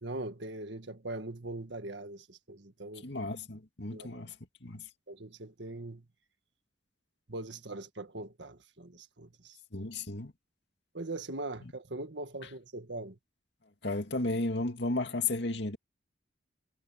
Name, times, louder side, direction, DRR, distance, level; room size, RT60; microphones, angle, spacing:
voice 1, 0.0-3.1 3.9-4.2 5.1-6.0 7.3-9.6 10.9-13.2, right 2 dB, 70° right, 1.8 m, -41 dB
voice 2, 3.0-4.4 4.6-4.8 9.7-10.3 13.8-15.8, left 2 dB, 65° left, 2.3 m, -33 dB
head